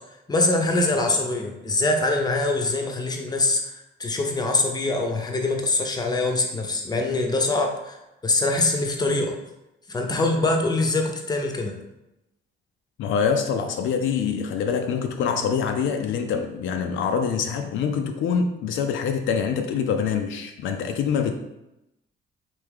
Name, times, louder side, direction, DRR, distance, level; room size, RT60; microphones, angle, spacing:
voice 1, 0.3-3.7 4.0-9.4 9.9-11.7, left 2 dB, 20° left, 2 dB, 0.6 m, -23 dB
voice 2, 13.0-21.4, left 6 dB, 75° left, 5 dB, 0.4 m, -25 dB
3.4 x 2.7 x 3.5 m, 0.91 s
cardioid pair, 90°, 20 cm